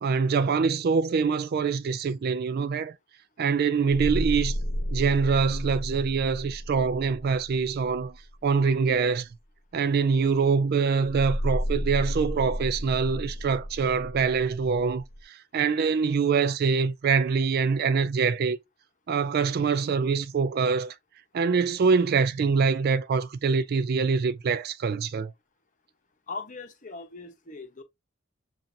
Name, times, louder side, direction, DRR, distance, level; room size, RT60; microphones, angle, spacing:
voice 1, 0.0-2.9 3.4-4.6 4.9-8.1 8.4-9.3 9.7-18.6 19.1-20.9 21.3-25.3, right 5 dB, 45° right, 0.3 m, -24 dB
sound 1, 3.9-8.3 11.0-15.2, equal, 85° left, 0.9 m, -32 dB
voice 2, 26.3-27.8, left 4 dB, 35° left, 0.9 m, -39 dB
7.3 x 2.5 x 2.7 m
head